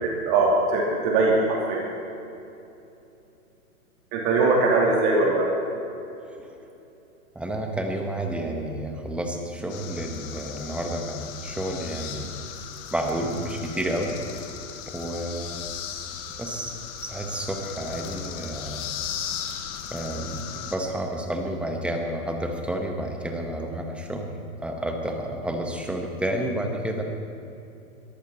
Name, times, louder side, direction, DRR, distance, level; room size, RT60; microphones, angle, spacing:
voice 1, 0.0-1.8 4.1-5.5, right 3 dB, 35° right, -2 dB, 2.8 m, -21 dB
voice 2, 7.3-12.3 12.9-14.1 14.9-15.7 16.4-18.8 19.9-27.0, right 1 dB, 5° right, 2 dB, 1.1 m, -30 dB
sound 1, 9.7-20.8, left 9 dB, 30° left, 1.2 m, -37 dB
22.0 x 14.5 x 4.3 m, 2.8 s
hypercardioid pair, 145°, 43 cm